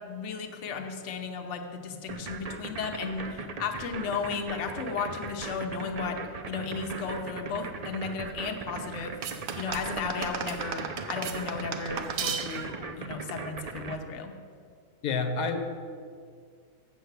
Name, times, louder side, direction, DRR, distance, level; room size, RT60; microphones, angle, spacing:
voice 1, 0.0-6.2 6.5-14.3, left 5 dB, 60° left, 4 dB, 1.1 m, -34 dB
sound 1, 2.1-14.0, right 4 dB, 55° right, 0.4 m, -38 dB
sound 2, 9.2-12.8, right 7 dB, 85° right, 1.2 m, -35 dB
voice 2, 15.0-15.6, left 4 dB, 90° left, 5 dB, 1.3 m, -28 dB
7.5 x 6.8 x 8.0 m, 2.1 s
omnidirectional pair, 1.5 m